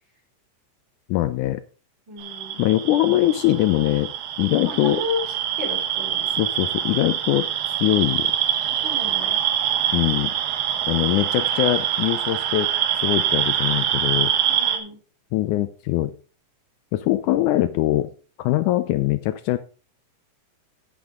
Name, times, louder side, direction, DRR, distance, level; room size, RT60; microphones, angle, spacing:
voice 1, 1.1-1.6 2.6-4.1 4.4-5.0 6.4-8.3 9.9-10.3 10.9-12.7 13.0-14.3 15.3-16.1 16.9-18.1 18.4-19.6, left 15 dB, 80° left, 11 dB, 1.9 m, -22 dB
voice 2, 2.1-2.6 4.6-5.2 5.6-6.2 8.7-9.4 14.5-15.0, left 2 dB, 35° right, -3 dB, 4.9 m, -32 dB
sound 1, 2.2-14.8, right 10 dB, 80° right, 2.8 m, -25 dB
9.8 x 9.6 x 3.7 m, 0.39 s
omnidirectional pair, 3.9 m